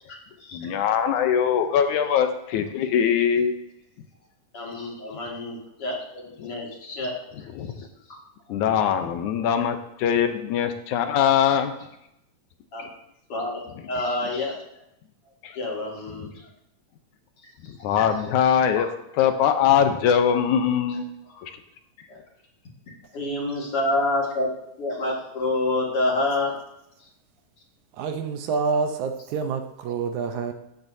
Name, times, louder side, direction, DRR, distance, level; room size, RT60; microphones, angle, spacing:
voice 1, 0.5-3.5 6.4-6.5 7.6-7.9 8.5-11.7 15.4-15.6 16.2-16.3 17.7-18.9 19.2-21.1 21.4-21.5, left 8 dB, 80° left, 7 dB, 2.1 m, -22 dB
voice 2, 4.5-7.5 7.8-7.9 12.7-12.8 13.3-14.5 15.5-16.4 17.4-17.5 18.0-18.1 18.7-18.9 21.3-21.5 22.1-22.2 23.1-24.5 24.8-26.5, left 2 dB, 50° left, -2 dB, 2.9 m, -28 dB
voice 3, 28.0-30.5, right 5 dB, 75° right, 6 dB, 2.1 m, -27 dB
14.0 x 9.2 x 2.7 m, 0.82 s
omnidirectional pair, 3.5 m